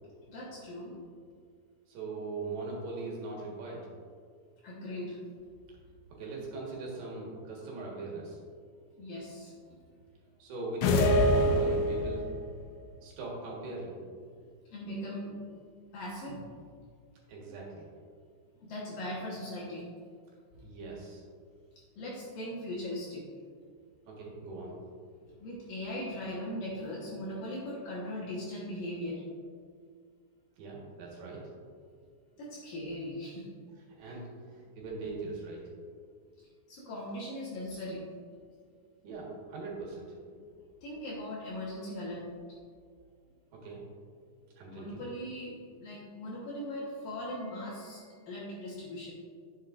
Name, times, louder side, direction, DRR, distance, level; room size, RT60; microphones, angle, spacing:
voice 1, 0.3-1.0 4.6-5.2 7.9-8.0 9.0-9.5 14.7-15.4 15.9-16.4 18.6-19.9 20.5-20.6 22.0-23.3 25.3-29.2 32.4-33.5 36.4-38.1 40.3-40.4 40.8-42.6 44.7-49.1, left 1 dB, 65° left, -6 dB, 2.4 m, -39 dB
voice 2, 1.9-3.8 6.2-8.4 10.4-10.9 11.2-12.2 13.0-14.0 17.3-17.9 20.6-21.2 24.1-24.8 30.6-31.4 34.0-34.2 34.8-35.6 39.0-40.1 43.5-43.8 44.5-45.0, right 3 dB, 65° right, -3 dB, 3.2 m, -40 dB
sound 1, 10.8-12.4, left 1 dB, 80° left, 2.9 m, -25 dB
10.5 x 7.3 x 2.5 m, 2.1 s
omnidirectional pair, 5.4 m